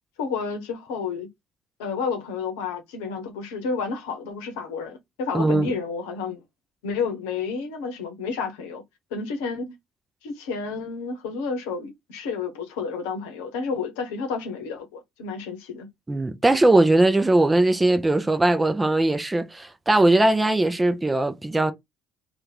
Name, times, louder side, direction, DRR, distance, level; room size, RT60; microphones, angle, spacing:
voice 1, 0.2-1.3 1.8-6.4 6.8-8.8 9.1-9.7 10.2-15.9, left 5 dB, 70° left, 0.8 m, -30 dB
voice 2, 5.3-5.7 16.1-21.7, right 2 dB, 15° right, 0.6 m, -20 dB
2.7 x 2.4 x 3.7 m
figure-of-eight pair, 55°, 0 cm